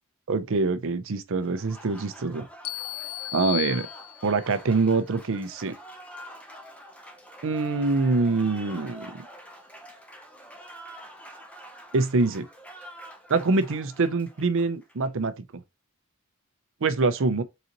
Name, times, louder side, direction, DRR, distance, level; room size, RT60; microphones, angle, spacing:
voice 1, 0.3-2.5 3.3-3.9 4.2-5.7 7.4-9.2 11.9-12.4 13.3-15.3 16.8-17.4, right 3 dB, 60° right, 0.6 m, -25 dB
Applause, 1.4-15.1, right 1 dB, 5° left, 0.7 m, -46 dB
sound 1, 2.6-4.6, left 18 dB, 85° left, 0.4 m, -35 dB
3.9 x 3.9 x 2.9 m
head